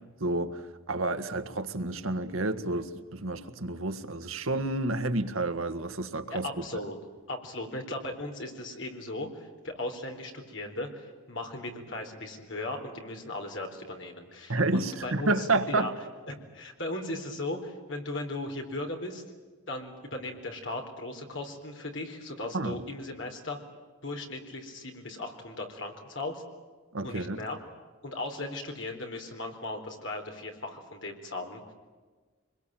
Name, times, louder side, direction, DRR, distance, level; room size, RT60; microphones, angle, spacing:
voice 1, 0.2-6.5 14.5-15.9 22.5-22.8 26.9-27.4, right 2 dB, 80° right, 9 dB, 1.6 m, -30 dB
voice 2, 6.3-7.0 7.3-15.9 16.3-19.2 19.7-23.6 24.0-26.4 27.0-27.6 28.0-31.7, left 2 dB, 60° left, 3 dB, 4.0 m, -37 dB
25.0 x 21.5 x 9.1 m, 1.4 s
head